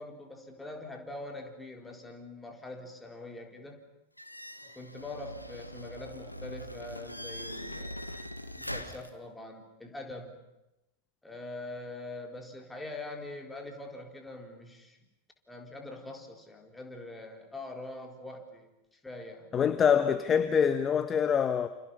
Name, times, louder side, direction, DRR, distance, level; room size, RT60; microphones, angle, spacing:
voice 1, 0.0-3.8 4.8-8.0 8.6-10.4 11.2-15.0 15.5-19.6, left 2 dB, 10° left, 4.1 m, -43 dB
sound 1, 4.2-9.1, equal, 85° left, 1.6 m, -42 dB
voice 2, 19.5-21.7, left 7 dB, 25° left, 1.1 m, -25 dB
29.5 x 28.0 x 5.6 m
figure-of-eight pair, 90°, 0 cm